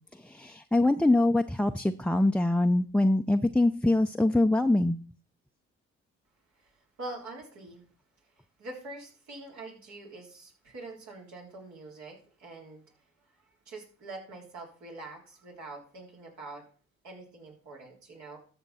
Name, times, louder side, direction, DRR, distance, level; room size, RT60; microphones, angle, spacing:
voice 1, 0.1-5.0, left 2 dB, 5° left, 6 dB, 0.5 m, -24 dB
voice 2, 7.0-7.8 8.6-12.8 13.7-16.6 17.0-18.4, right 2 dB, 70° right, -1 dB, 3.5 m, -44 dB
13.5 x 6.0 x 4.2 m, 0.41 s
supercardioid pair, 55°, 29 cm